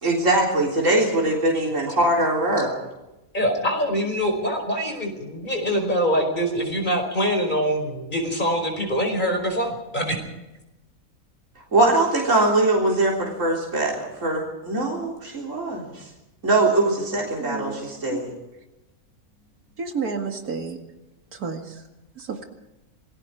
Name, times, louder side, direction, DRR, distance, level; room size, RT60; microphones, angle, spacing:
voice 1, 0.0-2.7 11.7-16.0 16.4-18.3, right 2 dB, 55° right, -2 dB, 4.0 m, -22 dB
voice 2, 3.3-10.2, equal, 30° left, 4 dB, 5.1 m, -24 dB
voice 3, 17.4-17.8 18.1-18.2 19.8-20.8 21.4-21.6 22.2-22.5, right 5 dB, 85° right, 4 dB, 2.5 m, -30 dB
27.0 x 20.5 x 4.7 m, 0.98 s
omnidirectional pair, 1.6 m